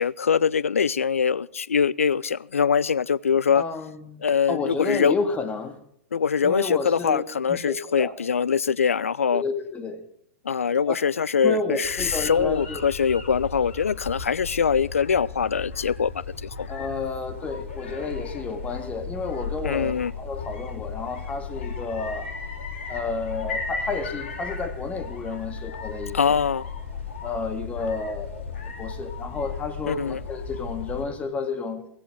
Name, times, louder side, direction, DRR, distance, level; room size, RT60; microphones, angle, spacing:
voice 1, 0.0-3.6 4.2-5.2 6.1-9.4 10.4-16.1 16.4-16.7 19.6-20.1 26.1-26.6 29.9-30.2, left 6 dB, 70° left, 0.5 m, -23 dB
voice 2, 3.5-5.8 6.4-7.2 7.5-8.1 9.3-10.0 10.9-11.0 11.4-12.9 16.7-22.3 22.9-26.4 27.2-31.9, left 4 dB, 20° left, 2.1 m, -31 dB
sound 1, 11.8-31.1, left 5 dB, 55° left, 3.9 m, -35 dB
16.5 x 16.0 x 3.7 m
figure-of-eight pair, 100°, 8 cm